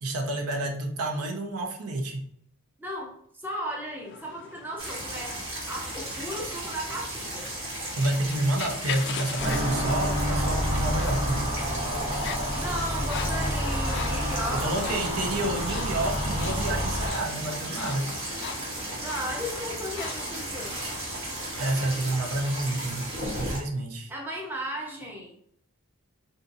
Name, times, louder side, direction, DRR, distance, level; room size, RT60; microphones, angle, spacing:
voice 1, 0.0-2.2 8.0-11.5 14.5-18.1 21.5-23.1 23.3-24.1, right 2 dB, 75° right, 3 dB, 0.6 m, -29 dB
voice 2, 2.8-3.1 3.4-7.5 12.5-15.0 19.0-20.8 24.1-25.4, equal, 10° right, -2 dB, 0.5 m, -35 dB
sound 1, 4.0-21.7, left 7 dB, 50° left, 0.3 m, -42 dB
small-forest-stream-in-mountains-surround-sound-front, 4.8-23.6, right 1 dB, 60° right, 1.0 m, -35 dB
sound 2, 9.4-17.1, equal, 30° right, 0.9 m, -29 dB
3.7 x 2.6 x 2.5 m, 0.67 s
head